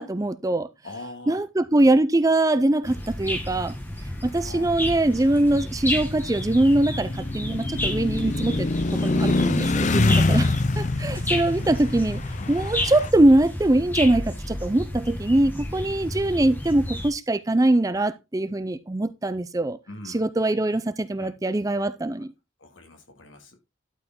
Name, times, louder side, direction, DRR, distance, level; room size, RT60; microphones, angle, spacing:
voice 1, 0.0-0.7 1.3-3.7 4.2-10.5 10.8-12.2 12.5-19.8 20.1-22.3, right 1 dB, 15° right, 0.4 m, -22 dB
voice 2, 0.8-1.5 4.4-4.7 5.4-5.6 11.3-12.0 12.4-12.5 19.9-20.3 21.2-21.4 22.2-22.3 22.6-23.6, left 2 dB, 70° left, 2.4 m, -42 dB
sound 1, 2.8-17.1, left 1 dB, 10° left, 1.5 m, -32 dB
sound 2, 5.7-13.1, left 2 dB, 35° left, 0.5 m, -25 dB
12.0 x 4.9 x 3.8 m
head